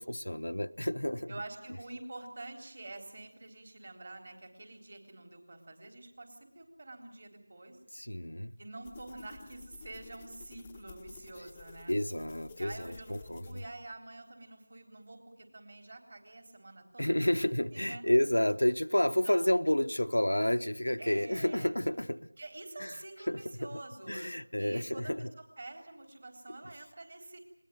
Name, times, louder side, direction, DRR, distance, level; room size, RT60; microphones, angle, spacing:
voice 1, 0.0-1.3 7.9-8.5 11.9-13.6 17.0-22.3 22.8-22.9 23.3-23.8 24.1-25.3, left 1 dB, 80° left, 9 dB, 0.9 m, -30 dB
voice 2, 1.3-7.8 8.6-12.0 12.6-18.0 19.0-19.5 21.0-21.8 22.4-25.3 25.6-27.4, right 2 dB, 40° right, 5 dB, 3.8 m, -47 dB
sound 1, 8.8-14.0, left 5 dB, 10° left, 0.9 m, -53 dB
20.5 x 19.5 x 9.3 m, 0.78 s
figure-of-eight pair, 170°, 0 cm